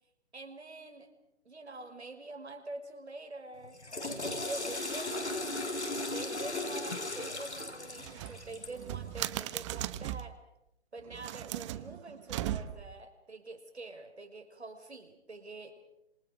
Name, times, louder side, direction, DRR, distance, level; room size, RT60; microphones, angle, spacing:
voice 1, 0.3-1.1 1.4-3.8 4.4-5.5 6.1-10.4 10.9-15.8, right 2 dB, 80° right, 6 dB, 6.0 m, -45 dB
Water / Toilet flush, 3.6-8.9, left 2 dB, 90° left, 4.9 m, -37 dB
sound 1, 8.0-10.4 11.1-13.0, right 13 dB, 25° right, 1.2 m, -38 dB
28.0 x 27.0 x 6.6 m, 0.84 s
figure-of-eight pair, 135°, 33 cm